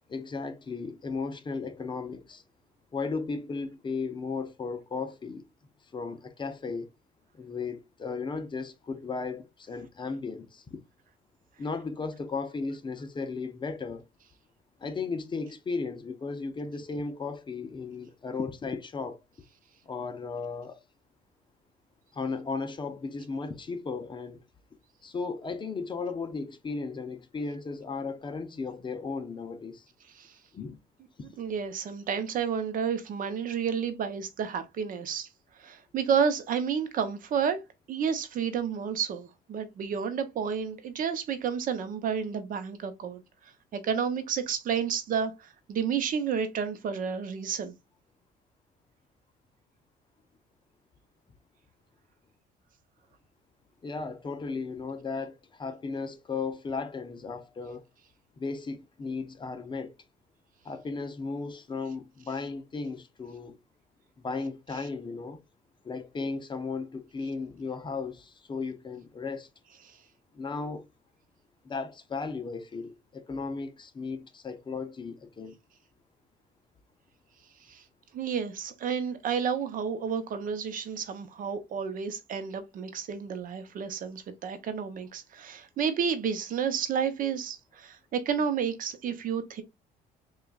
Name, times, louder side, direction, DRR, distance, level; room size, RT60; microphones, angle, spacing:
voice 1, 0.1-2.4 2.9-5.5 5.9-6.9 7.3-10.8 11.6-14.0 14.8-19.2 19.9-20.8 22.1-24.4 25.0-29.9 30.5-30.8 53.8-57.8 58.4-59.9 60.6-63.6 64.2-65.4 65.8-69.5 70.3-70.9 71.6-75.5, left 4 dB, 30° left, 0.6 m, -35 dB
voice 2, 31.4-35.3 35.5-37.6 37.9-47.7 69.8-70.0 77.6-77.8 78.1-89.6, right 7 dB, 55° right, 0.8 m, -31 dB
6.0 x 2.4 x 2.3 m
cardioid pair, 110°, 17 cm